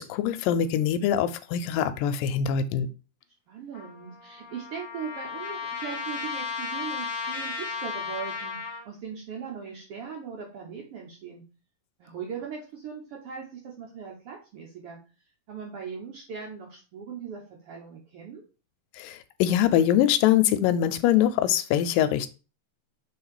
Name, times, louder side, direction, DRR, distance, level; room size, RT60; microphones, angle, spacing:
voice 1, 0.0-2.9 19.0-22.3, left 10 dB, 80° left, 10 dB, 2.2 m, -23 dB
voice 2, 3.5-11.4 12.0-15.0 15.5-18.4, right 6 dB, 85° right, -1 dB, 1.2 m, -39 dB
Trumpet, 3.7-8.9, left 5 dB, 55° left, 1.9 m, -34 dB
5.5 x 3.6 x 4.8 m, 0.32 s
omnidirectional pair, 4.1 m